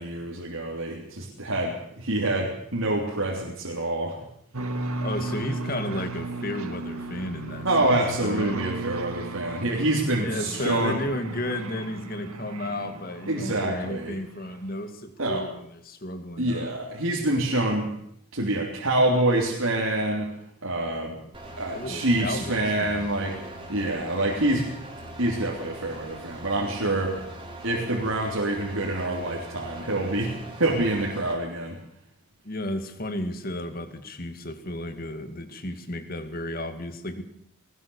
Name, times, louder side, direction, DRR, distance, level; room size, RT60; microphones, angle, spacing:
voice 1, 0.0-4.2 7.6-11.0 13.3-14.2 15.2-15.5 16.4-17.9 18.3-20.3 20.6-21.2 21.6-23.4 23.7-24.7 25.2-27.2 27.6-31.8, right 1 dB, 75° right, -2 dB, 3.5 m, -26 dB
sound 1, 4.5-14.1, right 2 dB, 90° right, 1.8 m, -35 dB
voice 2, 5.0-8.6 10.1-16.7 21.7-23.1 32.4-37.2, left 1 dB, 40° left, 8 dB, 2.2 m, -33 dB
sound 2, 21.3-31.3, right 1 dB, 25° right, 3.5 m, -41 dB
20.0 x 19.0 x 7.1 m, 0.72 s
head